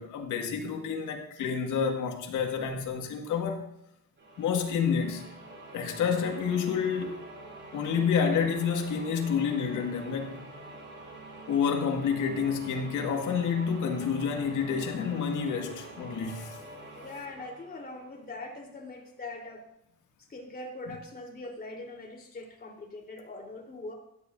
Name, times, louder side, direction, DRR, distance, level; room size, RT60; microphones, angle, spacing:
voice 1, 0.0-3.7 4.4-5.3 5.7-7.2 7.7-10.5 11.5-16.6, left 6 dB, 85° left, 2.0 m, -29 dB
sound 1, 4.2-18.8, right 2 dB, 40° right, 5.6 m, -46 dB
voice 2, 16.9-19.6 20.3-23.9, left 2 dB, 30° left, 3.8 m, -42 dB
16.0 x 11.5 x 2.7 m
cardioid pair, 90°, 30 cm